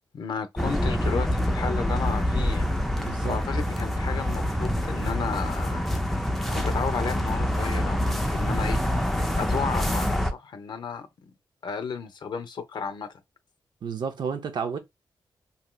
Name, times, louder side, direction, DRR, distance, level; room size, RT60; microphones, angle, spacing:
voice 1, 0.1-2.7 3.2-5.8 6.5-8.8 9.4-11.3 11.6-13.1, left 6 dB, 60° left, 0.6 m, -33 dB
sound 1, 0.6-10.3, equal, 5° left, 0.4 m, -26 dB
voice 2, 3.0-3.4 13.8-14.8, right 6 dB, 60° right, 0.6 m, -31 dB
3.1 x 2.7 x 2.2 m
wide cardioid pair, 140°, 8 cm